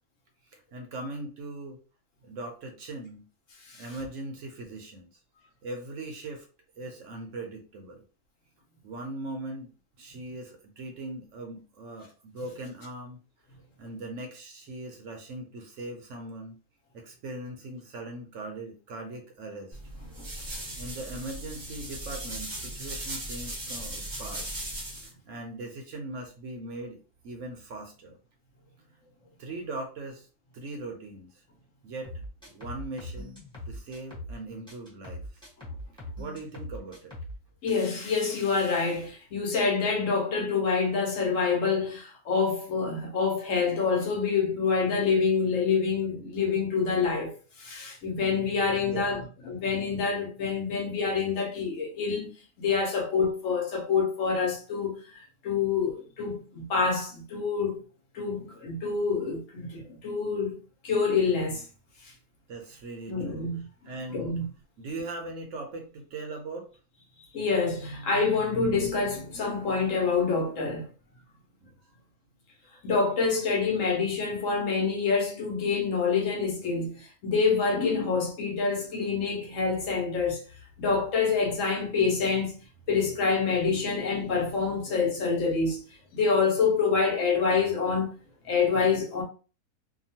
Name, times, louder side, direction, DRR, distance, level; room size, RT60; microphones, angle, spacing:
voice 1, 0.4-1.8 2.2-3.2 3.7-5.2 5.6-6.5 6.8-8.0 8.8-9.7 10.0-13.2 13.8-16.6 16.9-19.8 20.8-24.5 25.0-28.2 29.4-30.3 30.5-31.4 31.8-33.4 33.7-35.5 36.2-37.1 48.8-49.2 62.5-63.5 63.8-64.4 64.8-66.7 71.6-71.7, right 2 dB, 65° right, 0.9 m, -40 dB
sound 1, 19.7-25.1, right 1 dB, 30° right, 0.5 m, -38 dB
sound 2, 32.0-34.4 34.7-37.4 37.7-37.9, left 1 dB, 5° left, 1.0 m, -41 dB
voice 2, 37.6-47.3 47.6-52.3 52.6-55.0 55.4-57.8 58.1-60.6 60.8-61.6 62.0-62.1 63.1-64.5 67.3-70.9 72.8-80.4 80.8-82.5 82.9-85.8 86.1-88.1 88.4-89.2, left 5 dB, 65° left, 1.1 m, -27 dB
2.8 x 2.2 x 2.7 m
omnidirectional pair, 1.6 m